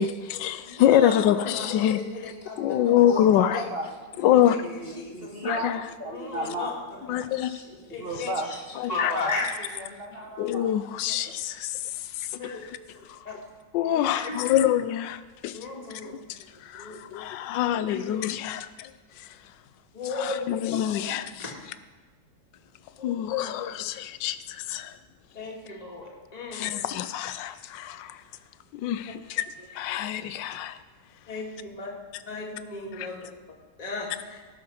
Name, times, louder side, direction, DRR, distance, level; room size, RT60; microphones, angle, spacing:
voice 1, 0.0-2.0 2.6-3.6 4.2-4.6 5.4-5.8 7.1-7.5 8.8-9.1 10.4-11.8 12.2-12.3 13.1-13.2 13.7-15.6 15.9-18.6 20.2-21.4 23.0-24.9 26.5-28.2 28.7-29.5 29.7-30.8 33.0-33.1, left 11 dB, 90° left, 13 dB, 1.3 m, -25 dB
voice 2, 0.6-3.1 3.5-3.6 4.2-5.5 6.0-6.7 7.1-8.6 8.9-9.7 12.3-12.6 13.3-13.4 13.8-14.4 15.5-16.2 16.7-17.0 17.8-18.2 19.9-21.0 21.4-21.5 23.0-23.4 23.6-23.7 25.3-26.9 31.3-31.9 32.3-33.3 33.8-34.4, left 3 dB, 20° left, -2 dB, 2.0 m, -36 dB
voice 3, 3.0-6.7 8.0-8.5 8.9-9.4 9.8-10.7 11.1-11.3, right 1 dB, 35° right, 1 dB, 1.6 m, -35 dB
17.0 x 6.4 x 5.7 m, 1.3 s
omnidirectional pair, 1.9 m